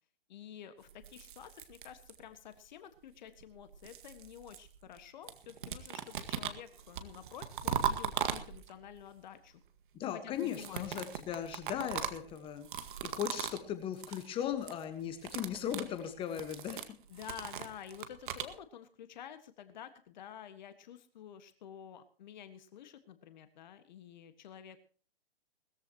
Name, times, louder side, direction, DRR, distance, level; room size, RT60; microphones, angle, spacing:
voice 1, 0.3-9.6 10.0-11.1 17.1-24.8, left 9 dB, 45° left, 10 dB, 1.5 m, -50 dB
sound 1, 0.9-2.5 3.4-5.0 5.3-8.9 10.3-13.7 13.9-14.3 14.5-14.8 15.1-18.5, right 8 dB, 50° right, 1.9 m, -39 dB
voice 2, 9.9-12.7 13.0-16.8, left 10 dB, 15° left, 9 dB, 1.3 m, -37 dB
20.5 x 14.0 x 2.9 m, 0.41 s
hypercardioid pair, 140°, 33 cm